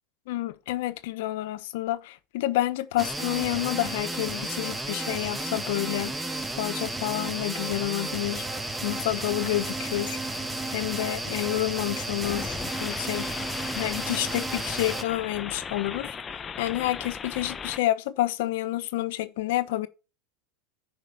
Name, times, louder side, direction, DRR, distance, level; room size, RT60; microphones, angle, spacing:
voice 1, 0.3-6.3 6.6-8.5 8.8-10.2 10.7-13.3 13.7-19.9, left 15 dB, 70° left, 1.1 m, -29 dB
sound 1, 3.0-15.0, right 2 dB, 10° right, 1.2 m, -33 dB
sound 2, 12.2-17.8, left 6 dB, 25° left, 0.7 m, -37 dB
10.0 x 5.4 x 7.1 m
hypercardioid pair, 100°, 0 cm